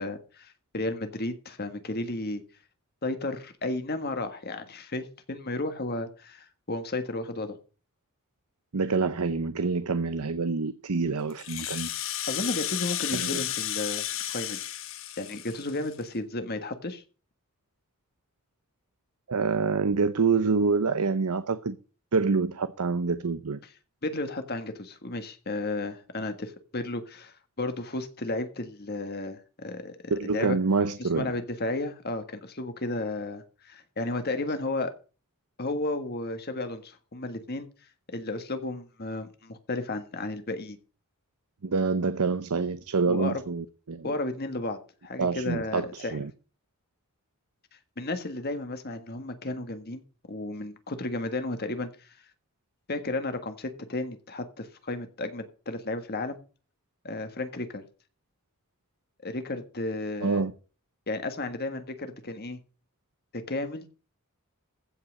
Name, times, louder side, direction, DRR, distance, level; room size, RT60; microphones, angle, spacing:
voice 1, 0.0-2.4 3.0-7.6 12.3-14.6 15.2-17.0 24.0-30.6 31.0-34.9 35.6-37.7 38.1-40.8 43.1-43.4 44.0-46.2 48.0-50.0 50.3-52.2 52.9-56.4 57.0-57.8 59.2-60.4 61.1-62.6 63.3-63.9, left 2 dB, 45° left, 1.6 m, -33 dB
voice 2, 8.7-11.9 13.1-13.4 19.3-21.8 22.1-23.6 30.1-31.3 41.6-44.1 45.2-46.3 60.2-60.5, right 4 dB, 90° right, 0.8 m, -26 dB
Rattle (instrument), 11.3-16.1, left 12 dB, 60° left, 1.2 m, -33 dB
15.5 x 5.7 x 6.4 m
head